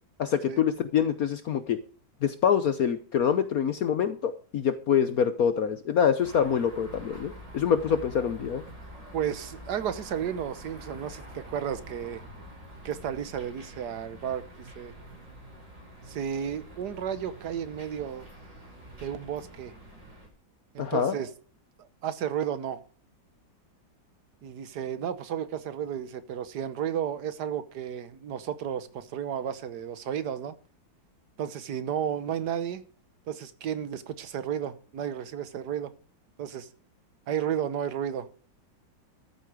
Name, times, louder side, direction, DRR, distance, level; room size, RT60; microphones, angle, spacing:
voice 1, 0.2-1.8 2.2-8.6 20.8-21.2, left 8 dB, 60° left, 1.1 m, -25 dB
sound 1, 6.2-20.3, equal, 40° right, 6.3 m, -46 dB
voice 2, 9.1-12.2 12.8-14.9 16.1-18.3 19.0-19.7 20.7-21.3 21.8-22.8 24.4-30.6 31.4-32.8 33.3-35.9 36.4-36.7 37.3-38.3, right 9 dB, 60° right, 1.5 m, -33 dB
13.5 x 8.4 x 4.8 m
omnidirectional pair, 2.0 m